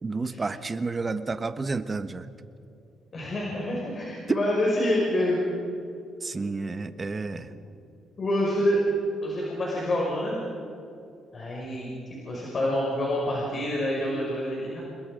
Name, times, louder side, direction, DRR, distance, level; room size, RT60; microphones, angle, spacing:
voice 1, 0.0-2.3 6.2-7.5, right 3 dB, 30° right, 11 dB, 1.2 m, -31 dB
voice 2, 3.1-5.4 8.2-8.9 9.2-10.4 11.3-11.9 12.2-14.8, left 1 dB, 40° left, -3 dB, 5.9 m, -27 dB
29.0 x 21.5 x 5.2 m, 2.5 s
cardioid pair, 90°, 0 cm